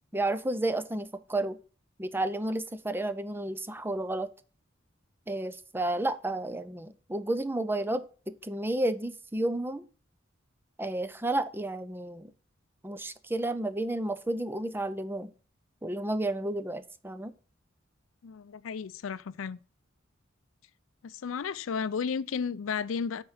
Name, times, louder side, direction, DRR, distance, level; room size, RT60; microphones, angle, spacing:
voice 1, 0.1-1.6 2.0-4.3 5.3-9.9 10.8-12.3 12.8-15.3 15.8-17.3, right 1 dB, 10° right, 0.5 m, -31 dB
voice 2, 18.2-19.6 21.0-23.2, left 6 dB, 80° left, 0.4 m, -33 dB
9.1 x 4.5 x 5.6 m
head